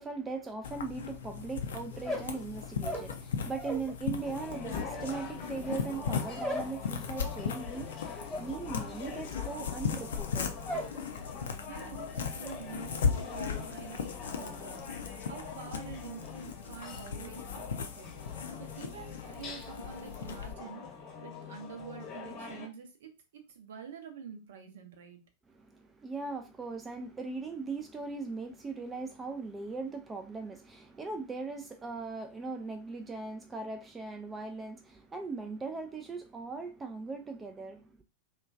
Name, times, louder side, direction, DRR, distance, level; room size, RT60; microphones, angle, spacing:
voice 1, 0.0-10.5 25.5-38.0, right 4 dB, 15° right, 0.3 m, -39 dB
sound 1, 0.6-20.5, left 6 dB, 65° left, 0.4 m, -37 dB
sound 2, 1.9-3.9 4.2-11.0 11.3-11.8 12.1-12.6, equal, ahead, 1.1 m, -40 dB
sound 3, 4.1-22.7, left 5 dB, 35° left, 0.8 m, -45 dB
voice 2, 11.7-15.0 15.2-18.2 18.6-25.2, right 6 dB, 60° right, 0.6 m, -47 dB
2.9 x 2.2 x 2.4 m
figure-of-eight pair, 90°, 0 cm